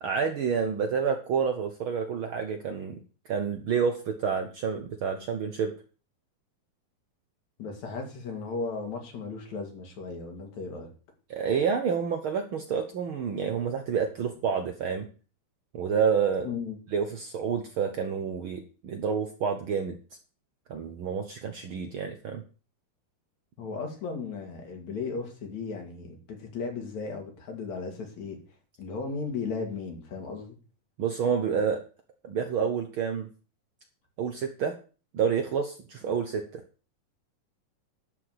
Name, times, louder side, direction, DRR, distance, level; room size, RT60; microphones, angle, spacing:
voice 1, 0.0-3.0 3.3-5.7 11.3-15.0 15.7-16.5 16.9-20.0 20.7-22.4 31.0-31.8 32.2-33.3 34.2-34.8 35.1-36.6, right 6 dB, 85° right, 5 dB, 1.1 m, -29 dB
voice 2, 7.6-10.9 16.4-16.8 23.6-28.4 28.8-30.6 36.1-36.2, left 4 dB, 60° left, 3 dB, 3.6 m, -36 dB
11.5 x 5.0 x 8.0 m, 0.37 s
omnidirectional pair, 3.9 m